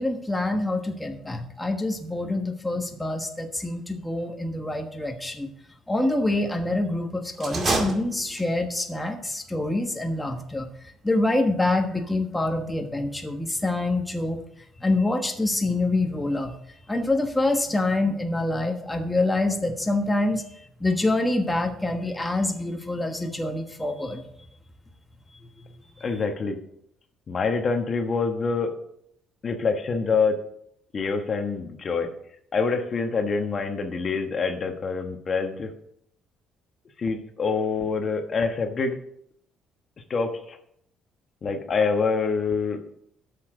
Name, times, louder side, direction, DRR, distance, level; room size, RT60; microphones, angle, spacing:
voice 1, 0.0-5.5 5.9-10.7 11.0-14.4 14.8-16.5 16.9-20.4 20.8-24.2 26.0-26.2, left 2 dB, 10° left, 4 dB, 1.3 m, -26 dB
sound 1, 7.3-8.7, right 3 dB, 40° right, 2.2 m, -28 dB
voice 2, 26.0-26.6 27.3-28.8 29.4-30.4 30.9-32.1 32.5-35.7 37.0-39.0 40.1-40.6 41.4-42.8, left 4 dB, 40° left, 5 dB, 1.2 m, -26 dB
8.3 x 6.8 x 6.2 m, 0.72 s
cardioid pair, 90°, 0 cm